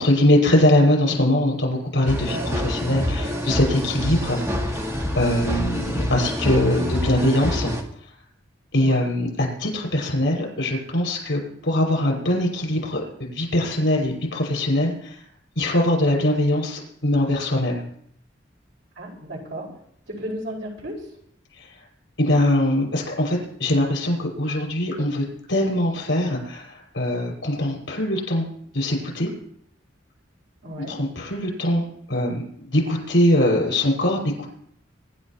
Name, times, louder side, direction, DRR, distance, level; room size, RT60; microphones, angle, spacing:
voice 1, 0.0-4.4 5.2-7.7 8.7-15.2 15.6-17.8 22.2-28.5 28.7-29.3 30.8-34.5, left 1 dB, 75° left, 0 dB, 5.7 m, -22 dB
sound 1, 2.1-7.8, left 1 dB, 15° right, 1.8 m, -26 dB
voice 2, 19.0-19.7 20.1-21.0 30.6-30.9, right 1 dB, 80° right, -2 dB, 5.0 m, -34 dB
25.0 x 11.0 x 3.0 m, 0.66 s
head